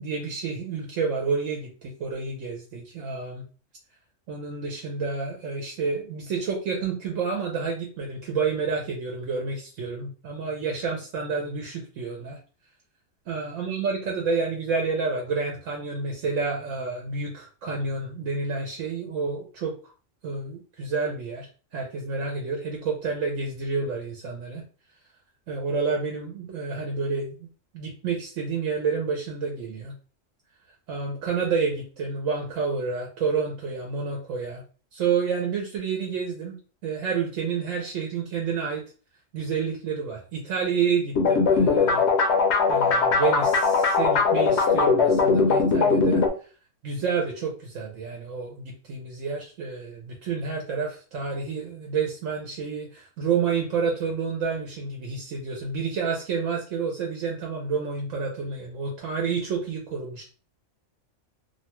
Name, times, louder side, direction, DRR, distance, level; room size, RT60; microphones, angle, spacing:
voice 1, 0.0-3.4 4.3-12.4 13.3-19.8 20.2-24.6 25.5-27.5 27.7-29.9 30.9-34.6 34.9-36.6 36.8-38.8 39.3-42.3 42.7-46.2 46.8-60.2, right 5 dB, 80° right, 0 dB, 1.0 m, -29 dB
sound 1, 41.2-46.3, left 4 dB, 65° left, 0.8 m, -20 dB
2.7 x 2.2 x 2.9 m, 0.37 s
omnidirectional pair, 1.3 m